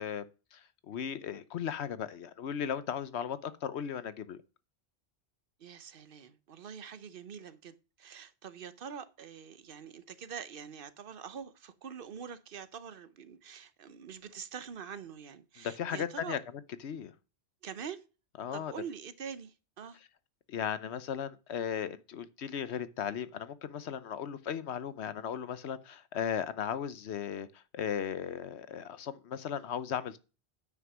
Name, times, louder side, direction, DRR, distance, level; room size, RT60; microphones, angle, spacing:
voice 1, 0.0-4.4 15.6-16.4 16.8-17.1 18.4-18.7 20.5-30.2, left 8 dB, 80° left, 1.1 m, -36 dB
voice 2, 5.6-16.4 17.6-18.0 18.5-20.0, right 7 dB, 55° right, 1.0 m, -45 dB
9.5 x 5.9 x 6.1 m
omnidirectional pair, 1.1 m